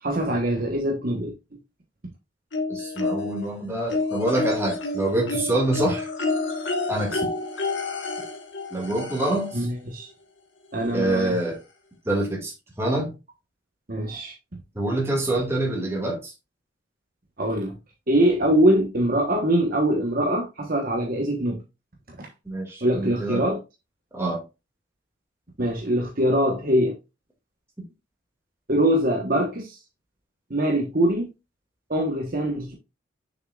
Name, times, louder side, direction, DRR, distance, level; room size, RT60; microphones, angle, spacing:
voice 1, 0.0-1.3 9.5-10.1 10.7-11.3 13.9-14.3 17.4-17.7 18.1-21.6 22.2-22.3 22.8-23.6 25.6-26.9 28.7-29.8 30.5-31.3 31.9-32.7, right 1 dB, 45° right, 1.2 m, -23 dB
sound 1, 2.5-3.5 3.9-9.6 10.8-10.9 11.3-11.4, left 3 dB, 65° left, 1.4 m, -29 dB
voice 2, 2.7-6.1 6.9-7.2 8.7-9.7 10.9-11.6 12.1-12.5 12.8-13.1 14.8-16.3 22.5-23.5 24.1-24.4, right 1 dB, 15° right, 2.2 m, -26 dB
6.7 x 6.1 x 2.4 m
head